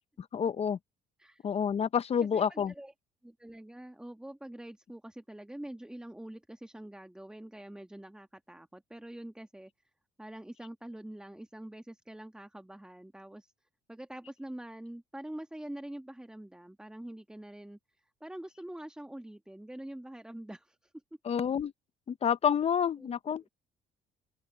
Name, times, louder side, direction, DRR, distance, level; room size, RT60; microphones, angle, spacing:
voice 1, 0.3-0.8 1.4-2.7 21.2-21.7 22.1-23.4, left 7 dB, 35° left, 0.7 m, -28 dB
voice 2, 2.3-2.9 3.2-9.7 10.2-13.5 13.9-20.9 23.0-23.5, right 1 dB, 5° right, 1.5 m, -45 dB
open air
cardioid pair, 110°, 17 cm